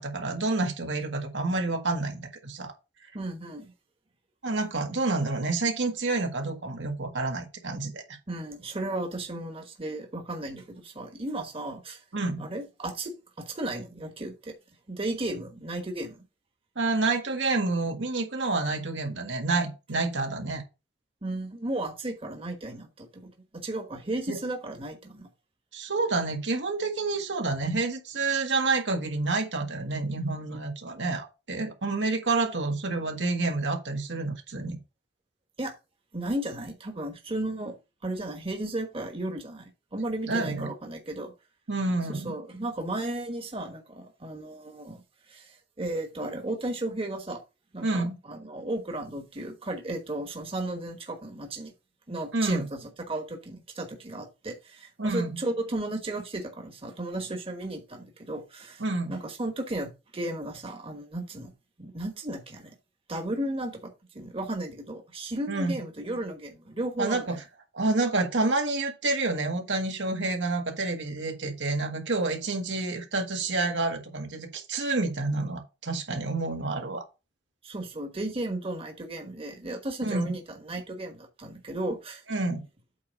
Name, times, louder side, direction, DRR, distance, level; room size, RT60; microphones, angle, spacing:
voice 1, 0.0-2.7 4.4-8.0 12.1-12.4 16.8-20.6 24.3-24.4 25.7-34.8 40.3-40.7 41.7-42.4 47.8-48.2 52.3-52.6 55.0-55.4 58.8-59.1 65.5-65.8 67.0-67.4 67.7-77.0 80.0-80.3 82.3-82.6, right 3 dB, 80° right, 1.8 m, -28 dB
voice 2, 3.1-3.7 8.3-12.0 12.4-14.5 14.9-16.2 21.2-25.3 35.6-35.7 36.1-37.8 38.0-41.3 42.1-47.4 47.7-51.7 52.1-61.5 61.8-62.8 63.1-67.4 77.6-82.2, right 1 dB, 30° right, 1.3 m, -34 dB
8.5 x 3.3 x 6.1 m
head